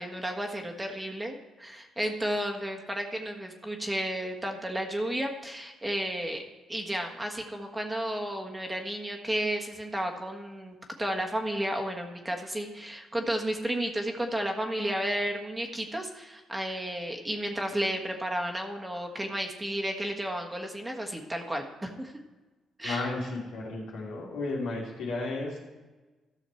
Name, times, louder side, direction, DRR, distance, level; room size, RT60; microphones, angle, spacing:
voice 1, 0.0-6.4 6.7-22.1 22.8-23.1, right 1 dB, 10° right, 2 dB, 1.4 m, -32 dB
voice 2, 22.8-25.6, left 2 dB, 85° left, -3 dB, 2.6 m, -33 dB
13.5 x 6.4 x 4.4 m, 1.2 s
cardioid pair, 90°, 0 cm